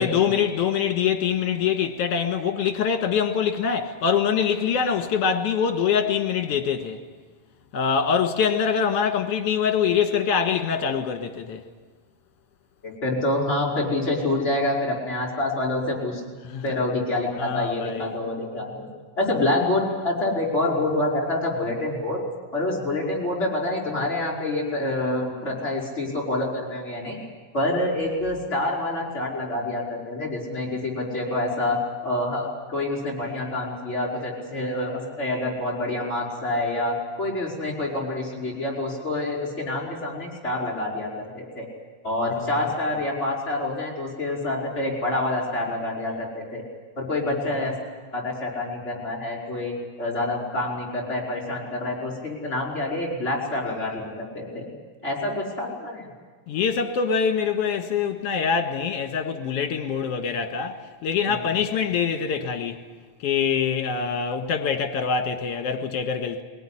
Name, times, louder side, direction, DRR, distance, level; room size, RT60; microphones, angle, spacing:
voice 1, 0.0-7.0 7.7-11.6 16.4-16.8 17.4-18.1 42.3-42.7 56.5-60.8 61.0-62.8 63.2-66.4, left 7 dB, 60° left, 2.4 m, -24 dB
voice 2, 12.8-16.2 16.6-18.9 19.2-22.2 22.5-27.2 27.5-41.7 42.0-46.6 47.0-47.7 48.1-54.7 55.0-56.1 61.3-61.4, left 2 dB, 20° left, 5.4 m, -27 dB
21.5 x 18.5 x 10.0 m
omnidirectional pair, 3.4 m